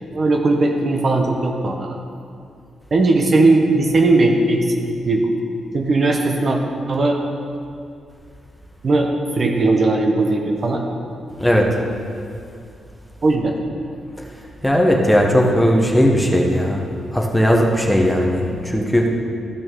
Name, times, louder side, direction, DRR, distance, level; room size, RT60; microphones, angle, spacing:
voice 1, 0.1-2.0 2.9-4.7 5.1-5.3 5.7-6.6 6.9-7.2 8.8-10.8 13.2-13.5, right 2 dB, 40° right, 2 dB, 0.8 m, -18 dB
voice 2, 14.6-16.8 17.1-19.1, equal, ahead, 0 dB, 1.0 m, -17 dB
14.0 x 5.9 x 3.7 m, 2.4 s
cardioid pair, 120°, 0 cm